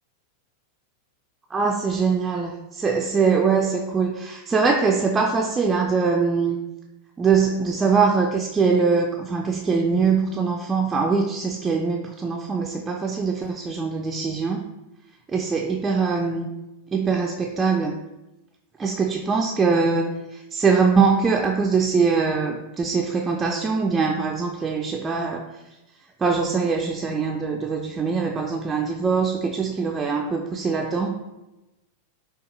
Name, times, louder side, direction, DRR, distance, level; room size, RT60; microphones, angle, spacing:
voice 1, 1.5-6.6 7.2-14.6 15.3-16.5 16.9-17.9 18.8-25.5 26.2-31.1, right 5 dB, 15° right, 1 dB, 0.3 m, -22 dB
5.1 x 2.3 x 2.8 m, 1.0 s
figure-of-eight pair, 90°, 0 cm